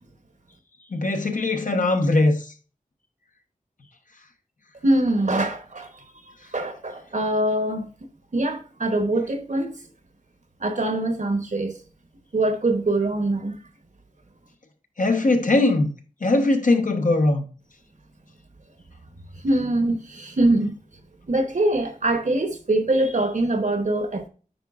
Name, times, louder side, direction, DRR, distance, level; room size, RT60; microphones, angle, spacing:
voice 1, 0.9-2.5 15.0-15.9 16.2-17.4, left 2 dB, 65° left, 1.0 m, -20 dB
voice 2, 4.8-6.0 6.5-7.9 8.3-9.8 10.6-11.8 12.3-13.6 19.4-20.7 21.3-24.3, right 2 dB, 60° right, 1.0 m, -23 dB
8.9 x 4.7 x 2.4 m
wide cardioid pair, 70°, 14 cm